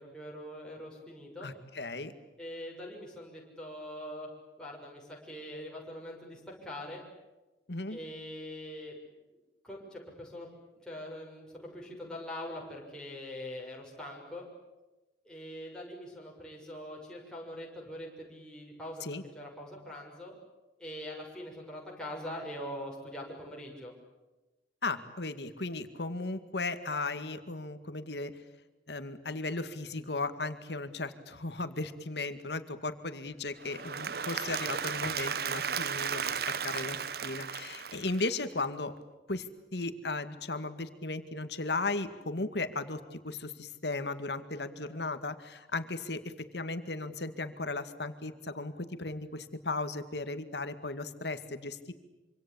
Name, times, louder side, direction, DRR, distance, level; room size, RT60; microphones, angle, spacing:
voice 1, 0.0-1.5 2.4-4.3 4.6-7.0 7.9-9.0 9.6-10.5 10.8-14.4 15.2-19.0 19.3-20.4 20.8-23.9, left 1 dB, 5° left, -3 dB, 6.5 m, -43 dB
voice 2, 1.4-2.1 7.7-8.0 19.0-19.2 24.8-28.4 28.9-38.9 39.3-51.9, left 3 dB, 70° left, 9 dB, 2.1 m, -36 dB
Applause / Crowd, 33.6-38.6, right 7 dB, 60° right, 0.9 m, -35 dB
26.5 x 26.0 x 8.7 m, 1.1 s
head